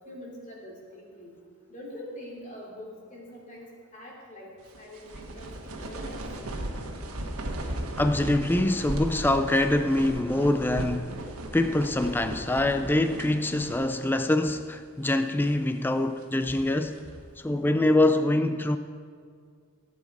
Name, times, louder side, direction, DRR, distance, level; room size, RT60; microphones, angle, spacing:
voice 1, 0.0-1.3 1.7-6.2, left 1 dB, 35° left, 3.1 m, -44 dB
sound 1, 4.7-14.2 14.4-14.6 15.2-15.6 16.2-17.3, right 1 dB, 90° right, 1.3 m, -37 dB
voice 2, 8.0-11.2 11.5-17.0 17.4-18.8, left 1 dB, 10° left, 0.3 m, -24 dB
15.5 x 8.5 x 4.8 m
head